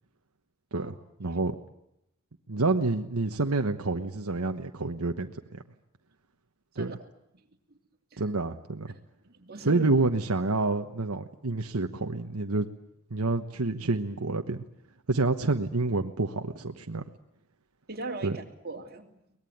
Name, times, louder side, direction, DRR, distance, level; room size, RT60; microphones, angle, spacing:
voice 1, 0.7-1.5 2.5-5.6 6.8-6.9 8.2-9.0 9.6-12.7 13.1-14.6 15.1-17.1 18.2-18.4, right 3 dB, 85° right, 6 dB, 1.2 m, -28 dB
voice 2, 9.2-9.9 17.9-19.1, right 3 dB, 45° right, 2 dB, 2.8 m, -39 dB
23.5 x 20.0 x 9.3 m, 0.82 s
head